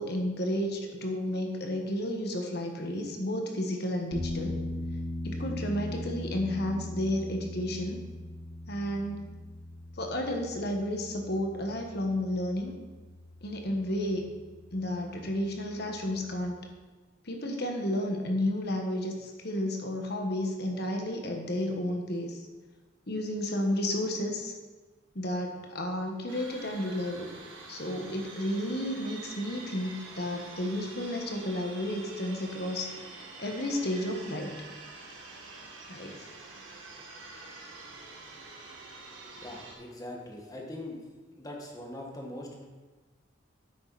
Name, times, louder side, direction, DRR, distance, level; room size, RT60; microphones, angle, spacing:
voice 1, 0.0-4.6 5.2-8.0 8.7-9.3 10.0-12.7 13.4-14.3 14.7-16.6 17.2-22.4 23.1-24.5 25.1-27.3 27.7-32.9 33.4-34.6 35.9-36.2, left 1 dB, 55° left, 3 dB, 1.4 m, -32 dB
sound 1, 4.1-16.4, left 1 dB, 50° right, 3.2 m, -40 dB
sound 2, 26.3-39.7, right 3 dB, 85° right, 1.8 m, -46 dB
voice 2, 39.4-41.0 41.3-42.6, left 1 dB, 20° left, 0 dB, 1.5 m, -41 dB
10.0 x 7.9 x 4.1 m, 1.3 s
head